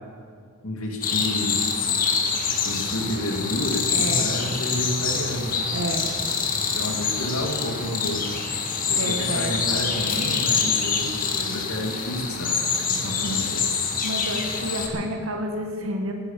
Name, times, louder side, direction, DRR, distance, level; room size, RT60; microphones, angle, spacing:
voice 1, 0.6-1.7 2.5-5.7 6.6-8.5 8.9-13.6, left 1 dB, 75° left, 2 dB, 2.3 m, -30 dB
sound 1, 1.0-14.9, left 5 dB, 40° left, 1.9 m, -26 dB
voice 2, 3.9-4.3 5.7-6.1 9.0-9.7 14.0-16.1, right 1 dB, 65° right, 3 dB, 1.8 m, -30 dB
19.0 x 9.9 x 7.3 m, 2.2 s
head